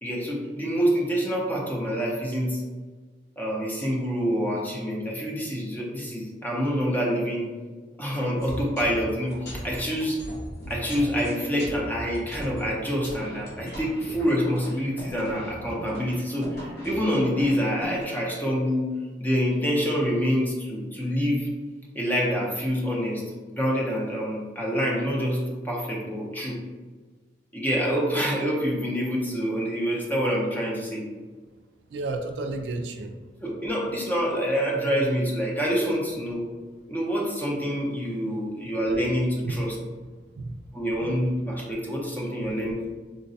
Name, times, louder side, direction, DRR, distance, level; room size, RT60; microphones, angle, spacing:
voice 1, 0.0-2.6 3.4-7.5 8.0-10.2 10.7-18.9 19.2-21.5 21.9-23.2 23.5-26.6 27.5-31.1 33.4-36.5 36.9-39.8 40.7-42.9, equal, 10° left, -3 dB, 0.6 m, -26 dB
sound 1, 8.4-18.0, equal, 65° left, 1.1 m, -39 dB
voice 2, 31.9-33.2 39.4-39.6 40.3-41.1 42.4-42.5, right 2 dB, 70° right, 5 dB, 0.3 m, -32 dB
3.8 x 2.2 x 2.7 m, 1.4 s
head